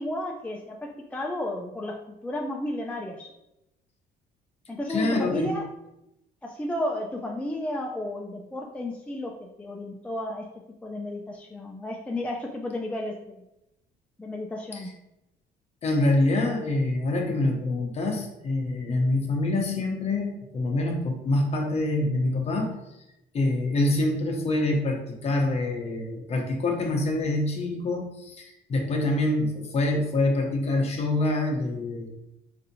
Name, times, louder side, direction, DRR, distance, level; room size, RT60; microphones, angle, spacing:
voice 1, 0.0-3.3 4.7-5.7 6.4-10.5 10.8-13.4 14.2-14.9, left 1 dB, 10° left, 0 dB, 0.3 m, -33 dB
voice 2, 4.9-5.6 15.8-22.7 23.3-32.1, left 2 dB, 40° left, 1 dB, 0.8 m, -26 dB
4.0 x 2.6 x 2.7 m, 0.88 s
cardioid pair, 110°, 17 cm